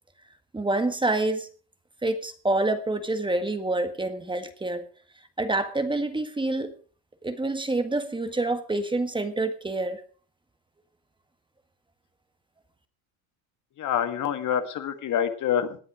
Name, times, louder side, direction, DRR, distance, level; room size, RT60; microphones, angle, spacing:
voice 1, 0.5-1.5 2.0-4.8 5.4-6.7 7.2-10.0, right 2 dB, 10° right, 8 dB, 1.6 m, -27 dB
voice 2, 13.8-15.8, left 9 dB, 45° left, 9 dB, 1.8 m, -26 dB
18.5 x 9.9 x 5.0 m, 0.42 s
supercardioid pair, 100°, 40 cm